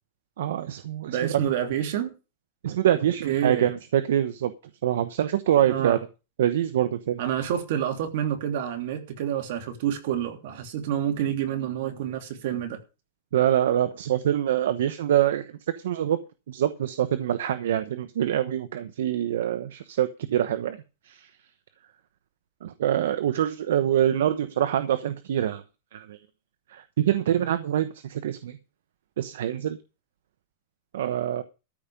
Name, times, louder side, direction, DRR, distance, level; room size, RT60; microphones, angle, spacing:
voice 1, 0.4-1.2 2.6-4.5 4.8-6.0 6.4-7.2 13.3-16.2 16.5-20.8 21.1-21.3 22.6-25.6 25.9-26.2 26.7-28.6 29.2-29.8 30.9-31.4, right 11 dB, 85° right, 1.0 m, -25 dB
voice 2, 1.1-2.1 3.2-3.7 5.6-6.0 7.2-12.8, right 10 dB, 60° right, 3.1 m, -28 dB
13.5 x 5.3 x 8.6 m
supercardioid pair, 150°, 0 cm